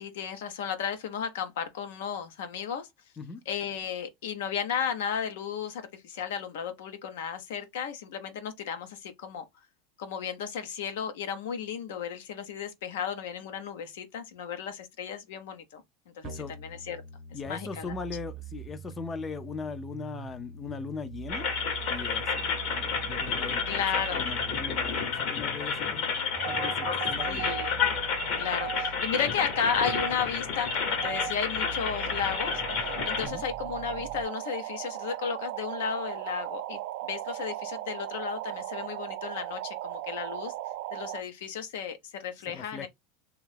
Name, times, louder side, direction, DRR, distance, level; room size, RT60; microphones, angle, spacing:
voice 1, 0.0-2.9 3.5-9.4 10.0-15.8 16.2-17.0 17.5-17.9 23.7-24.3 27.3-27.8 28.4-32.6 33.0-40.5 40.9-42.9, left 7 dB, 85° left, 0.7 m, -34 dB
voice 2, 16.2-16.6 17.3-21.5 21.9-26.1 26.5-27.5 33.2-33.4 42.5-42.9, left 5 dB, 20° left, 0.4 m, -39 dB
sound 1, 16.2-34.2, right 8 dB, 50° right, 0.8 m, -44 dB
sound 2, 21.3-33.3, left 6 dB, 60° left, 1.0 m, -30 dB
sound 3, 26.3-41.2, right 13 dB, 65° right, 0.4 m, -38 dB
2.7 x 2.3 x 3.3 m
supercardioid pair, 130°, 0 cm